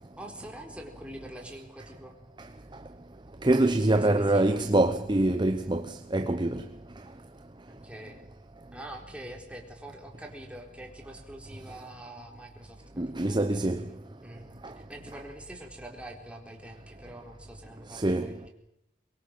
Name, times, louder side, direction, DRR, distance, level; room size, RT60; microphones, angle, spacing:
voice 1, 0.2-2.2 3.9-4.6 7.7-8.2 8.7-13.6 14.2-14.5 14.8-18.5, right 1 dB, 5° right, 4.0 m, -45 dB
voice 2, 3.4-5.8 6.1-6.6 13.0-13.8 17.9-18.3, right 2 dB, 25° right, 0.8 m, -24 dB
23.0 x 22.5 x 7.6 m
head